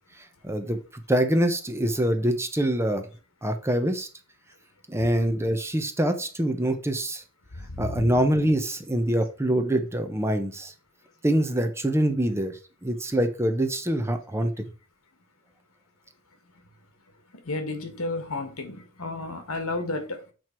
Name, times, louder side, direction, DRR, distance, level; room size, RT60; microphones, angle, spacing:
voice 1, 0.4-3.1 3.4-4.1 4.9-7.2 7.8-10.7 11.2-14.5, right 1 dB, 10° right, 0.8 m, -25 dB
voice 2, 7.6-8.1 17.4-20.3, left 2 dB, 75° left, 1.6 m, -32 dB
7.9 x 4.6 x 4.5 m
head